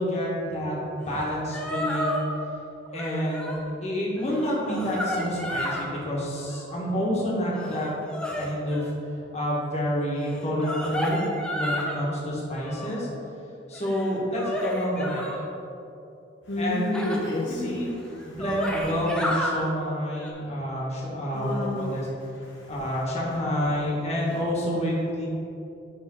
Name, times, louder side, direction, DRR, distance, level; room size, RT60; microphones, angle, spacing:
voice 1, 0.0-2.2 2.9-7.9 8.3-8.9 9.3-11.2 11.5-13.1 13.7-15.5 16.6-17.0 17.5-17.9 18.3-22.1 22.7-25.3, equal, 35° left, -5 dB, 1.6 m, -28 dB
sound 1, 1.2-1.3 1.5-2.3 2.9-3.6 4.2-5.9 6.4-6.8 7.5-8.9 10.3-12.1 12.5-13.1 13.7-15.4 16.9-17.2 17.9-18.0 18.2-19.5 20.1-20.3, equal, 5° left, 0.7 m, -31 dB
voice 2, 16.5-18.4 21.3-22.0 22.4-23.0, left 1 dB, 75° left, -3 dB, 0.9 m, -31 dB
10.0 x 3.8 x 3.8 m, 2.8 s
head